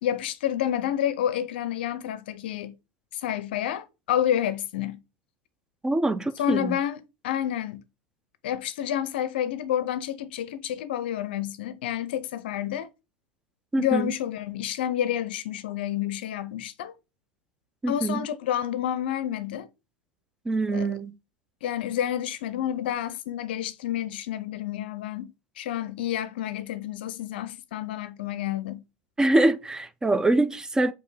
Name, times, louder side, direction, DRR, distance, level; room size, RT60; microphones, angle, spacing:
voice 1, 0.0-2.8 3.1-5.0 6.4-7.8 8.4-12.9 13.8-16.9 17.9-19.7 20.7-20.9 21.6-28.8, left 11 dB, 70° left, 0.5 m, -29 dB
voice 2, 5.8-6.8 13.7-14.1 17.8-18.3 20.5-21.1 29.2-30.9, right 2 dB, 10° right, 0.3 m, -24 dB
4.4 x 2.7 x 3.2 m
hypercardioid pair, 85°, 6 cm